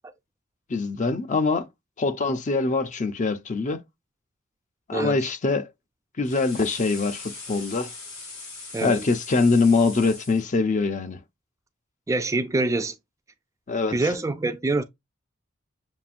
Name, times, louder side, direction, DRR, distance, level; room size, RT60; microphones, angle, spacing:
voice 1, 0.7-1.7 2.0-3.8 4.9-5.7 6.2-7.9 8.8-11.2 13.7-14.0, left 3 dB, 35° left, 0.5 m, -23 dB
voice 2, 4.9-5.3 8.7-9.1 12.1-12.9 13.9-14.8, right 2 dB, 15° right, 0.3 m, -25 dB
sound 1, 6.2-10.4, left 3 dB, 75° left, 2.9 m, -40 dB
7.1 x 2.5 x 2.5 m
head